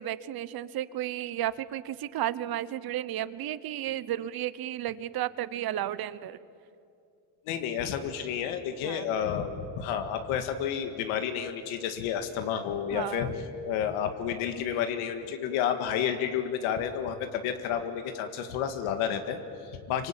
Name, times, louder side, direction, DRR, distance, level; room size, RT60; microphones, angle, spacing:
voice 1, 0.0-6.4 8.8-9.1 12.9-13.4, right 12 dB, 50° right, 16 dB, 1.0 m, -33 dB
voice 2, 7.5-13.4 13.6-20.1, left 8 dB, 90° left, 7 dB, 2.0 m, -31 dB
26.0 x 25.0 x 9.0 m, 2.6 s
cardioid pair, 140°, 48 cm